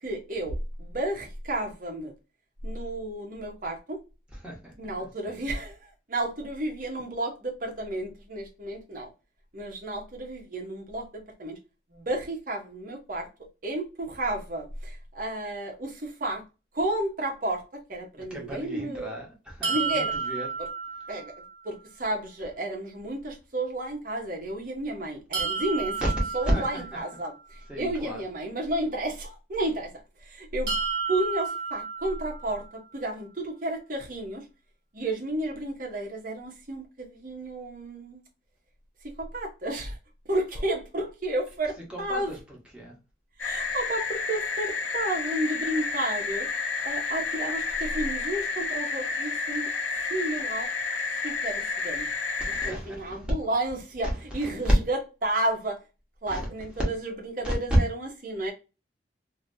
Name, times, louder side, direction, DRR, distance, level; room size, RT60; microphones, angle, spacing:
voice 1, 0.0-2.1 2.6-4.0 4.8-9.1 9.5-11.6 11.9-13.3 13.6-16.4 16.7-17.6 17.9-19.1 19.7-20.1 21.1-21.3 21.6-26.1 26.3-29.9 30.2-30.8 31.1-32.6 32.9-34.4 34.9-38.2 39.2-40.0 40.3-42.3 43.4-46.5 46.8-49.7 50.1-50.7 51.2-52.0 52.6-55.8 56.2-58.5, right 1 dB, 45° right, 0.9 m, -32 dB
voice 2, 4.3-5.4 18.2-20.5 26.4-27.0 27.7-28.2 41.9-43.0 52.4-53.3 54.3-54.7 56.3-56.4 57.4-57.5, equal, 5° right, 1.2 m, -35 dB
sound 1, 19.6-21.6 25.3-27.4 30.7-32.7, right 5 dB, 80° right, 1.0 m, -32 dB
sound 2, 43.4-52.7, left 4 dB, 75° left, 0.8 m, -30 dB
2.9 x 2.8 x 2.6 m
head